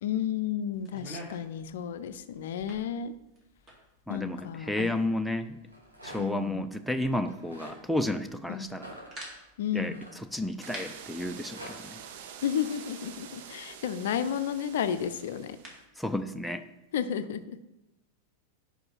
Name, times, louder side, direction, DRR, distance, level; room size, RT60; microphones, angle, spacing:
voice 1, 0.0-3.1 4.1-4.9 6.2-6.7 8.5-8.7 9.6-10.0 12.4-15.6 16.9-17.6, left 8 dB, 60° left, 11 dB, 0.4 m, -32 dB
sound 1, 0.7-15.9, right 1 dB, 25° right, 2.1 m, -51 dB
voice 2, 4.1-5.6 6.0-8.9 9.7-9.9 10.3-12.0 16.0-16.6, left 1 dB, ahead, 7 dB, 0.4 m, -32 dB
Rattle, 5.5-6.4 7.2-7.8 8.7-10.7 11.2-11.7, right 1 dB, 85° right, 1.8 m, -47 dB
sound 2, 10.6-15.8, right 8 dB, 50° right, 0.6 m, -46 dB
5.2 x 5.1 x 5.7 m, 0.93 s
figure-of-eight pair, 90°, 0 cm